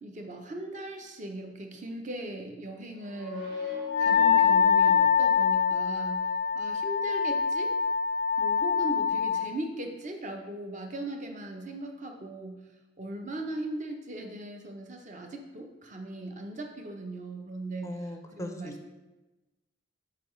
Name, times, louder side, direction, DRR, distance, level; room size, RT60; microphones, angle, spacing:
voice 1, 0.0-3.5 4.0-6.3 6.5-7.8 8.4-12.7 13.0-18.9, right 1 dB, 40° right, 3 dB, 0.7 m, -39 dB
sound 1, 2.9-6.5, left 5 dB, 65° right, 1.6 m, -40 dB
Wind instrument woodwind instrument, 3.9-9.4, left 6 dB, 85° left, 0.5 m, -24 dB
voice 2, 17.8-18.9, left 1 dB, 15° left, 5 dB, 0.5 m, -39 dB
6.7 x 4.7 x 3.1 m, 1.1 s
head